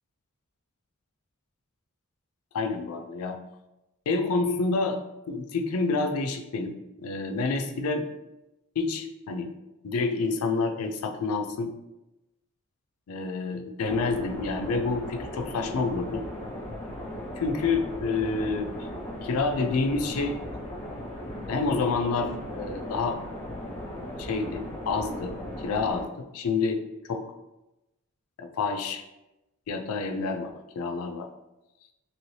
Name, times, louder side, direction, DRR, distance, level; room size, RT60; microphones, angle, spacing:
voice 1, 2.5-3.4 4.1-5.0 5.3-8.1 8.8-9.5 9.8-11.7 13.1-16.3 17.4-18.7 19.2-20.4 21.5-23.2 24.2-26.8 27.1-27.2 28.4-29.0 29.7-30.5 30.8-31.3, left 4 dB, 85° left, 6 dB, 0.4 m, -28 dB
sound 1, 13.8-26.0, left 1 dB, 30° left, 0.8 m, -37 dB
3.0 x 2.7 x 3.1 m, 0.97 s
head